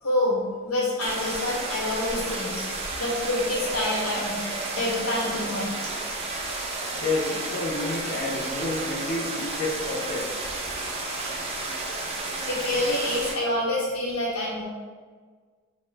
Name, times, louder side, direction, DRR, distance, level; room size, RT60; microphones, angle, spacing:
voice 1, 0.0-2.7 3.0-5.7 12.5-14.6, left 1 dB, 80° left, -4 dB, 0.8 m, -27 dB
sound 1, 1.0-13.3, right 2 dB, 25° right, 0.3 m, -32 dB
Marimba xylophone, 3.4-6.2, right 3 dB, 85° right, 0.5 m, -41 dB
voice 2, 7.0-10.2, left 2 dB, 35° left, -2 dB, 0.5 m, -29 dB
2.8 x 2.0 x 3.2 m, 1.5 s
head